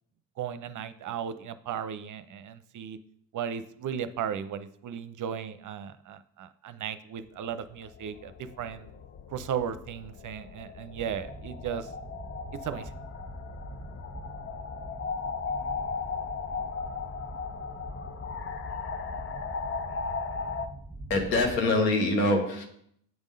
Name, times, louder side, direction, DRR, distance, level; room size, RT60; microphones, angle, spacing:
voice 1, 0.4-3.0 3.3-8.9 9.3-11.9 12.6-12.9, right 8 dB, 40° right, 12 dB, 0.6 m, -36 dB
sound 1, 7.4-20.7, left 5 dB, 25° left, 0.5 m, -37 dB
sound 2, 10.9-21.6, right 2 dB, 5° right, 1.3 m, -44 dB
voice 2, 21.1-22.6, left 2 dB, 85° left, 3 dB, 1.3 m, -24 dB
8.0 x 3.6 x 5.3 m, 0.66 s
hypercardioid pair, 50°, 49 cm